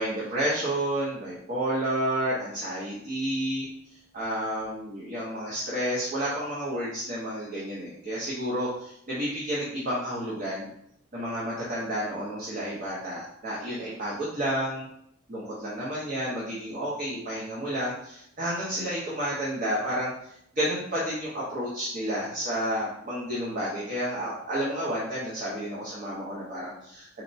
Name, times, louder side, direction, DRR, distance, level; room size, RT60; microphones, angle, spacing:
voice 1, 0.0-3.7 4.1-10.7 11.1-14.9 15.3-20.1 20.5-27.2, equal, 40° right, -7 dB, 0.8 m, -30 dB
4.1 x 2.1 x 2.6 m, 0.73 s
head